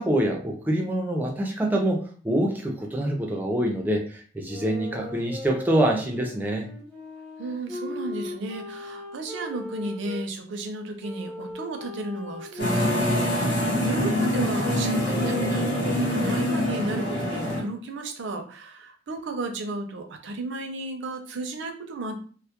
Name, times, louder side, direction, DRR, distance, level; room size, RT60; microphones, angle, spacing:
voice 1, 0.0-4.0 4.3-6.7, right 1 dB, 10° right, 0 dB, 0.4 m, -25 dB
sound 1, 4.4-10.2 11.0-16.6, left 2 dB, 5° left, 0.8 m, -38 dB
voice 2, 7.4-22.2, right 2 dB, 75° right, 4 dB, 0.5 m, -34 dB
sound 2, 12.6-17.6, left 1 dB, 65° left, 0.7 m, -25 dB
2.2 x 2.0 x 2.8 m, 0.43 s
head